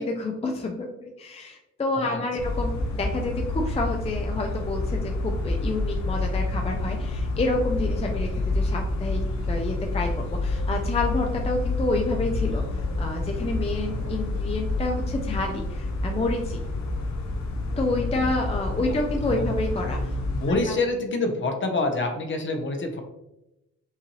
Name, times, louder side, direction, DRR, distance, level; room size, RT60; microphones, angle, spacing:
voice 1, 0.0-9.2 9.5-16.6 17.8-20.1 20.7-20.8, left 2 dB, 20° left, 2 dB, 0.5 m, -29 dB
sound 1, 2.4-20.5, left 2 dB, 70° left, 1.0 m, -28 dB
voice 2, 20.3-23.0, left 2 dB, 40° left, 4 dB, 0.9 m, -27 dB
5.6 x 2.6 x 3.0 m, 0.93 s
cardioid pair, 90°, 30 cm